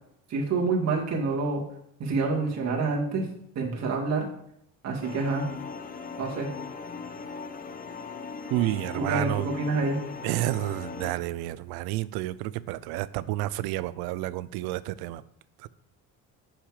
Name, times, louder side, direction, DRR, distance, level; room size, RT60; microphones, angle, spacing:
voice 1, 0.3-1.6 2.0-3.3 3.6-4.3 4.8-5.5 6.2-6.5 9.0-10.0, right 3 dB, 45° right, 0 dB, 2.0 m, -27 dB
sound 1, 5.0-11.1, left 5 dB, 25° left, 0.6 m, -39 dB
voice 2, 8.5-9.5 10.2-15.2 15.6-15.7, right 15 dB, 80° right, 18 dB, 0.5 m, -30 dB
6.6 x 6.1 x 4.9 m, 0.74 s
cardioid pair, 135°, 36 cm